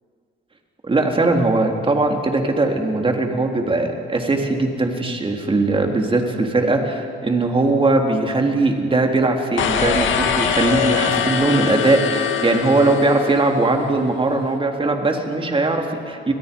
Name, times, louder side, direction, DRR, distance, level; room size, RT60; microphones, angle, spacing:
voice 1, 0.8-16.3, right 2 dB, 25° right, 2 dB, 3.5 m, -20 dB
sound 1, 9.6-13.8, left 8 dB, 75° left, 2.0 m, -22 dB
30.0 x 22.0 x 5.4 m, 2.3 s
cardioid pair, 90°, 20 cm